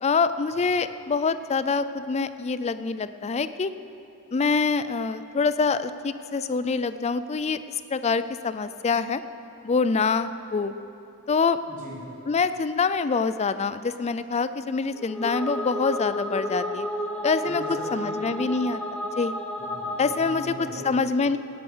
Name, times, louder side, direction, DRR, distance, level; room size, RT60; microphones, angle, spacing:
voice 1, 0.0-3.7 4.3-7.6 7.9-9.2 9.6-10.7 11.3-11.6 12.3-16.9 17.2-17.6 17.9-18.8 19.2-19.3 20.0-20.5 20.8-21.4, left 4 dB, 30° left, 13 dB, 0.4 m, -25 dB
voice 2, 11.7-12.0 17.4-18.2 19.6-21.0, right 1 dB, 35° right, -6 dB, 3.7 m, -40 dB
sound 1, 14.9-20.7, left 1 dB, 5° left, 1.4 m, -32 dB
17.0 x 9.4 x 6.2 m, 2.9 s
head